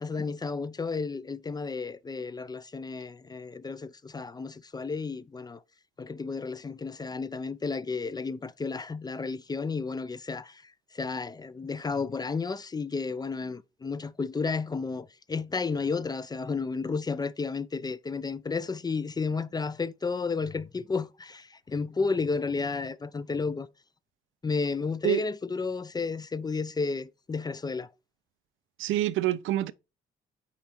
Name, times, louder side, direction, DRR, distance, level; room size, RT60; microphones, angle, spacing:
voice 1, 0.0-5.6 6.0-23.7 24.4-27.9, left 4 dB, 20° left, 0.4 m, -32 dB
voice 2, 28.8-29.7, right 13 dB, 80° right, 0.5 m, -26 dB
5.7 x 4.0 x 4.4 m
cardioid pair, 90°, 20 cm